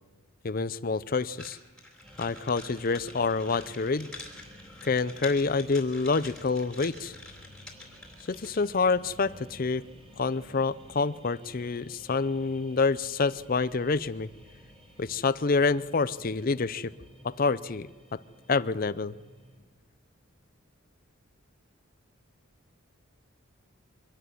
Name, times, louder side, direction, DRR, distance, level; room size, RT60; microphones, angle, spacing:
voice 1, 0.4-1.6 2.2-4.1 4.8-7.1 8.3-9.8 10.2-14.3 15.0-16.9 17.2-18.2 18.5-19.1, left 4 dB, 40° left, 17 dB, 0.5 m, -27 dB
sound 1, 1.3-8.8, left 2 dB, 5° left, 3.5 m, -47 dB
sound 2, 2.0-19.6, equal, 25° right, 5.3 m, -53 dB
24.5 x 12.5 x 9.3 m, 1.4 s
head